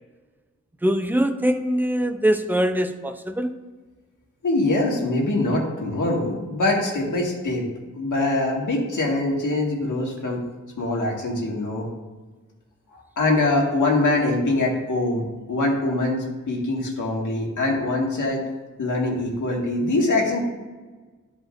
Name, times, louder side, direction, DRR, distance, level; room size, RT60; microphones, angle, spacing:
voice 1, 0.8-3.5, equal, 5° right, 7 dB, 0.5 m, -22 dB
voice 2, 4.4-7.7 7.9-10.4 10.8-11.9 12.9-18.4 18.8-20.4, left 2 dB, 85° left, -2 dB, 1.9 m, -23 dB
13.0 x 5.0 x 2.5 m, 1.3 s
wide cardioid pair, 130°, 30 cm